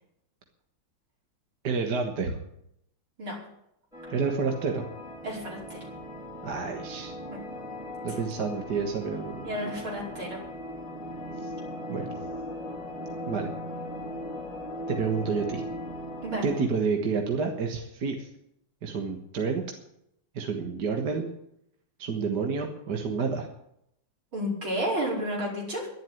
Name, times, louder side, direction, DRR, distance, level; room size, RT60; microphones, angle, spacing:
voice 1, 1.6-2.4 4.1-4.8 6.4-7.2 8.0-9.7 11.4-11.5 11.9-12.2 13.3-13.5 14.9-15.6 16.4-18.3 18.8-19.6 20.3-21.3 22.0-23.5, right 5 dB, 55° right, 3 dB, 1.9 m, -29 dB
sound 1, 3.9-16.6, left 1 dB, ahead, 3.5 m, -38 dB
voice 2, 5.2-5.8 8.1-8.2 9.4-10.4 16.2-16.5 24.3-25.9, equal, 75° right, -4 dB, 5.8 m, -31 dB
11.0 x 11.0 x 9.2 m, 0.78 s
omnidirectional pair, 2.2 m